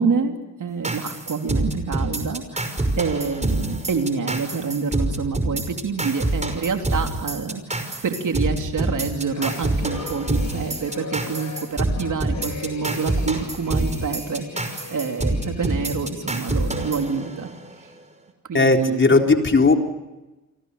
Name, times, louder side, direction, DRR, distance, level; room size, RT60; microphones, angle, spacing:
voice 1, 0.0-17.5 18.5-19.0, right 5 dB, 60° right, 4 dB, 3.5 m, -27 dB
sound 1, 0.8-17.7, right 2 dB, 20° right, 5.6 m, -26 dB
sound 2, 8.7-16.6, left 4 dB, 55° left, 6.5 m, -40 dB
voice 2, 18.5-19.7, left 3 dB, 35° left, 3 dB, 3.8 m, -16 dB
30.0 x 24.5 x 6.9 m, 1.1 s
cardioid pair, 70°, 35 cm